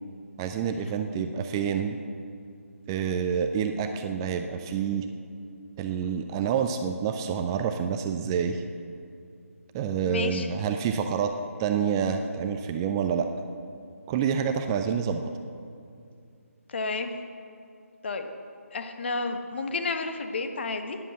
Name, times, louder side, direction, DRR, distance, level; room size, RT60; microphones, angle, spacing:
voice 1, 0.4-2.0 2.9-5.1 5.8-8.6 9.7-11.3 11.6-13.3 14.1-15.3, right 7 dB, 15° right, 6 dB, 0.4 m, -28 dB
voice 2, 10.0-10.5 16.7-17.1 18.0-18.3 18.7-21.0, left 3 dB, 45° left, 7 dB, 1.1 m, -31 dB
11.5 x 9.9 x 7.7 m, 2.4 s
figure-of-eight pair, 150°, 8 cm